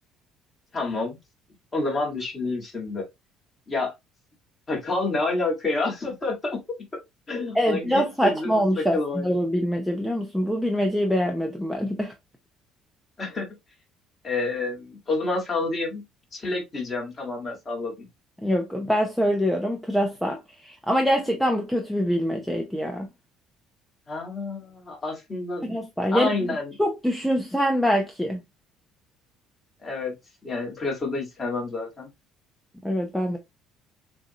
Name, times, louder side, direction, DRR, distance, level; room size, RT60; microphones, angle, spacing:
voice 1, 0.7-1.2 1.7-3.1 3.7-3.9 4.7-6.6 7.3-9.3 13.2-13.5 14.2-16.0 16.3-18.1 24.1-25.7 26.1-26.7 29.8-30.1 30.4-32.1, left 3 dB, 20° left, 2.0 m, -28 dB
voice 2, 7.5-12.1 18.4-23.1 25.6-28.4 32.8-33.4, equal, ahead, 0.7 m, -24 dB
6.7 x 2.7 x 2.9 m
cardioid pair, 155°, 0 cm